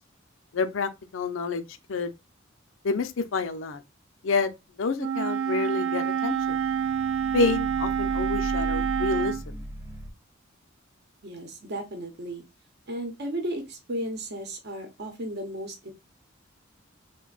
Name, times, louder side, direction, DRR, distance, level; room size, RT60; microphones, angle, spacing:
voice 1, 0.5-1.6 1.9-2.1 2.8-3.8 4.2-4.5 4.8-6.6 7.3-9.4, left 4 dB, 70° left, 0.5 m, -28 dB
Wind instrument woodwind instrument, 5.0-9.4, right 8 dB, 75° right, 0.3 m, -27 dB
sound 1, 6.2-10.1, equal, 15° right, 0.5 m, -37 dB
voice 2, 11.2-12.4 12.9-15.9, right 1 dB, 55° right, 0.8 m, -34 dB
3.3 x 2.2 x 3.9 m
head